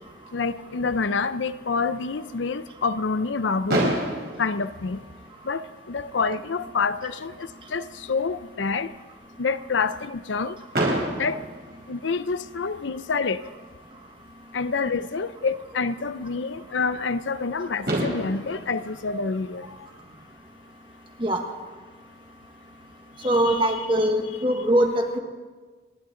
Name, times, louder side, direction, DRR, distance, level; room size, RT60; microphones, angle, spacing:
voice 1, 0.3-3.9 4.4-5.0 5.4-8.9 9.4-10.6 11.2-11.4 11.9-13.4 14.5-19.7 23.4-23.8, left 4 dB, 90° left, 13 dB, 0.6 m, -27 dB
Fireworks, 3.7-5.7 6.5-6.6 6.8-7.0 7.3-7.4 10.7-12.6 14.3-14.4 17.4-17.5 17.9-20.2, right 1 dB, 60° right, 4.7 m, -29 dB
voice 2, 23.2-24.9 25.1-25.2, right 1 dB, 25° right, 3 dB, 1.6 m, -21 dB
29.5 x 11.5 x 3.9 m, 1.4 s
head